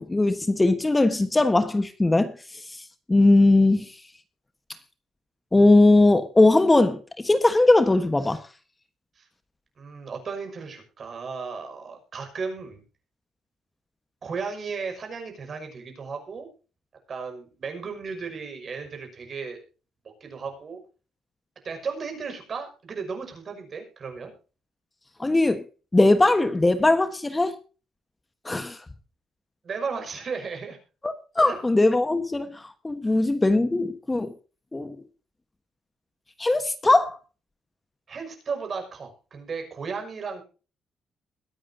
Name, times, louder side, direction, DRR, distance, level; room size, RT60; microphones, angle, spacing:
voice 1, 0.0-3.9 5.5-8.4 25.2-25.6 25.9-27.6 28.4-28.8 31.0-34.3 34.7-35.0 36.4-37.2, left 2 dB, 15° left, 1.3 m, -20 dB
voice 2, 9.8-12.8 14.2-16.5 17.1-19.6 20.2-20.8 21.6-24.3 29.6-30.8 31.4-31.6 33.0-33.2 38.1-40.4, right 5 dB, 45° right, 5.9 m, -35 dB
21.5 x 9.8 x 2.8 m
cardioid pair, 90°, 0 cm